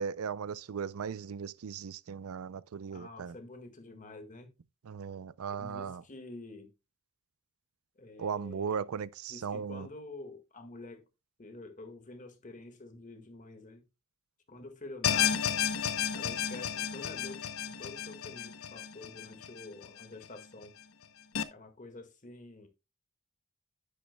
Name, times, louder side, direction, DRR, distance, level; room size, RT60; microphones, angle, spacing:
voice 1, 0.0-3.4 4.8-6.0 8.2-9.9, right 6 dB, 85° right, 0.4 m, -37 dB
voice 2, 2.9-4.5 5.5-6.7 8.0-8.8 9.3-11.1 11.4-13.8 14.5-15.5 16.1-17.4 17.8-20.7 21.5-22.7, left 2 dB, 35° left, 1.7 m, -48 dB
sound 1, 15.0-20.3 20.6-20.7 21.3-21.4, left 8 dB, 75° left, 0.7 m, -32 dB
10.5 x 9.4 x 2.2 m
head